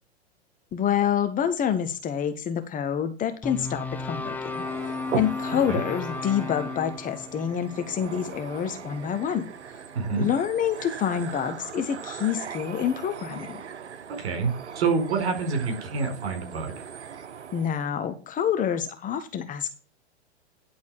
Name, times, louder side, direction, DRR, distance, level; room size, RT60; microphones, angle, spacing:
voice 1, 0.7-4.6 5.1-9.5 10.2-13.6 17.5-19.8, left 9 dB, 25° left, 1.3 m, -27 dB
sound 1, 3.4-9.7, left 4 dB, 5° left, 0.4 m, -35 dB
sound 2, 3.9-17.9, right 7 dB, 85° right, 1.0 m, -39 dB
voice 2, 9.9-10.3 14.1-16.8, right 4 dB, 65° right, 4.4 m, -27 dB
11.0 x 4.3 x 7.2 m
hypercardioid pair, 115°, 34 cm